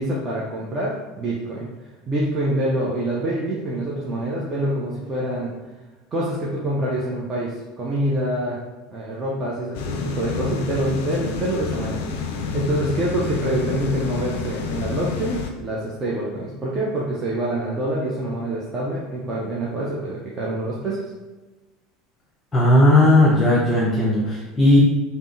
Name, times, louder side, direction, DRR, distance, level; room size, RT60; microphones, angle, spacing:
voice 1, 0.0-1.7 2.1-5.5 6.1-8.6 8.9-12.3 12.5-21.0, right 1 dB, 30° right, -5 dB, 0.5 m, -26 dB
sound 1, 9.7-15.5, left 5 dB, 65° left, 0.3 m, -29 dB
voice 2, 22.5-24.8, left 1 dB, 20° left, -6 dB, 0.8 m, -16 dB
3.5 x 2.1 x 2.6 m, 1.2 s
figure-of-eight pair, 70°, 0 cm